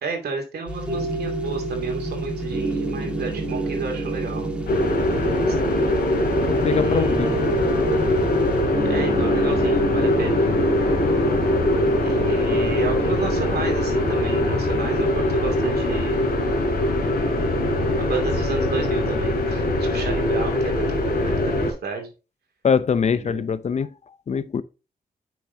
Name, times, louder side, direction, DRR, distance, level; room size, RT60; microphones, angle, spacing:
voice 1, 0.0-4.5 5.5-5.6 6.7-7.4 8.8-10.4 12.0-16.2 18.0-22.1 23.1-23.5, right 5 dB, 90° right, 2.5 m, -31 dB
sound 1, 0.7-8.7, left 1 dB, 5° right, 1.9 m, -33 dB
sound 2, 0.9-15.2, right 3 dB, 50° right, 3.3 m, -30 dB
sound 3, 4.7-21.7, left 1 dB, 85° left, 2.9 m, -22 dB
voice 2, 6.5-7.3 22.6-23.9 24.3-24.6, left 6 dB, 45° left, 0.6 m, -22 dB
8.4 x 6.2 x 2.7 m
wide cardioid pair, 125°, 16 cm